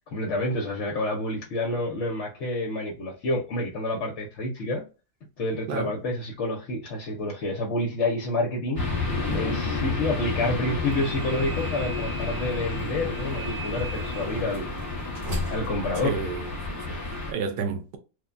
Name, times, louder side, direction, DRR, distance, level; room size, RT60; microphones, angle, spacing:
voice 1, 0.1-4.8 5.4-8.8 9.3-14.7 15.5-16.2 16.9-17.1, left 2 dB, 60° left, 0.8 m, -28 dB
sound 1, 8.8-17.3, left 3 dB, 15° left, 0.8 m, -30 dB
sound 2, 10.8-16.7, equal, 60° right, 1.1 m, -38 dB
voice 2, 16.0-18.0, right 5 dB, 80° right, 0.5 m, -32 dB
3.1 x 2.2 x 2.4 m
omnidirectional pair, 1.6 m